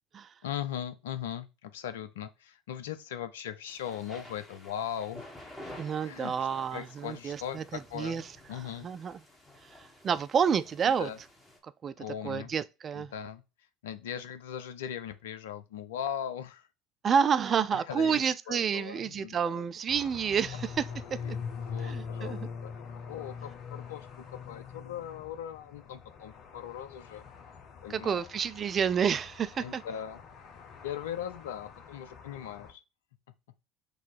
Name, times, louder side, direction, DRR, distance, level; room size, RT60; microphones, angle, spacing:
voice 1, 0.4-5.3 6.0-6.3 6.7-8.2 8.5-8.9 10.9-11.2 12.0-12.5 13.0-13.4 13.8-16.7 17.7-19.6 21.2-22.7 23.1-27.3 27.8-28.3 29.6-30.2 30.8-32.8, left 9 dB, 70° left, 0.5 m, -39 dB
sound 1, 3.7-11.6, left 1 dB, 15° left, 1.6 m, -51 dB
voice 2, 5.8-8.2 8.5-9.2 9.6-11.1 11.6-13.1 17.0-21.4 21.8-22.5 27.9-29.8, right 7 dB, 35° right, 0.3 m, -30 dB
sound 2, 19.9-32.7, left 6 dB, 45° left, 0.8 m, -43 dB
4.0 x 2.7 x 4.6 m
figure-of-eight pair, 65°, 0 cm